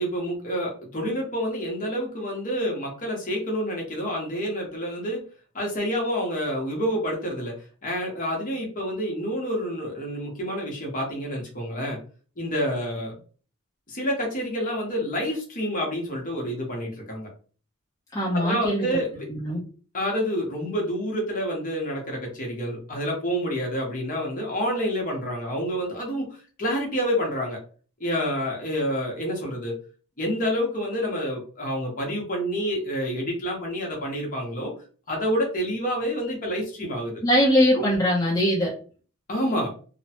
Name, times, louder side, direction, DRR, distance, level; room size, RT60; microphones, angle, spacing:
voice 1, 0.0-5.2 5.5-12.0 12.4-13.1 13.9-17.3 18.3-19.3 19.9-26.3 26.6-27.6 28.0-29.8 30.2-34.7 35.1-37.2 37.7-38.0 39.3-39.7, equal, 40° left, 0 dB, 1.0 m, -28 dB
voice 2, 18.1-18.9 19.3-19.6 37.2-38.7, equal, 15° left, -7 dB, 0.7 m, -21 dB
3.0 x 2.0 x 2.8 m, 0.40 s
head